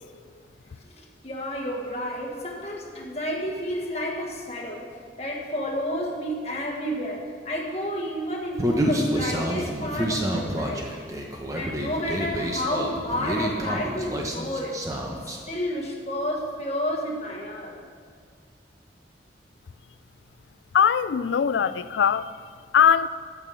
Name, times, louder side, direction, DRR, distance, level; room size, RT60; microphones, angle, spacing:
voice 1, 0.9-10.9 11.5-14.8 15.2-17.8, equal, 35° left, 1.5 m, -31 dB
Human voice, 8.6-15.4, equal, 20° right, 1.0 m, -28 dB
voice 2, 20.7-22.3 22.7-23.1, left 7 dB, 85° left, 0.4 m, -20 dB
8.9 x 7.3 x 6.9 m
head